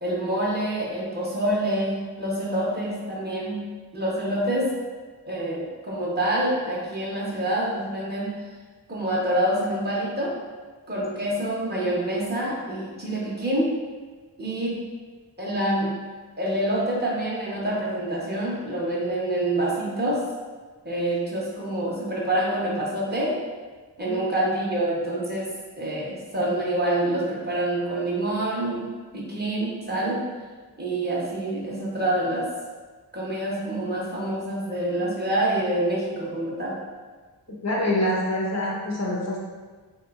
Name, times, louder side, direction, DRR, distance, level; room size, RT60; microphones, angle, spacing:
voice 1, 0.0-4.7 5.2-8.4 8.9-10.3 10.9-13.7 14.4-14.8 15.4-15.9 16.4-20.2 20.8-23.4 24.0-25.5 25.8-30.2 30.8-32.5 33.1-36.8, right 1 dB, 25° right, -6 dB, 0.7 m, -26 dB
voice 2, 37.6-39.4, left 1 dB, 40° left, -3 dB, 0.5 m, -25 dB
3.2 x 2.9 x 2.3 m, 1.4 s
wide cardioid pair, 110°, 41 cm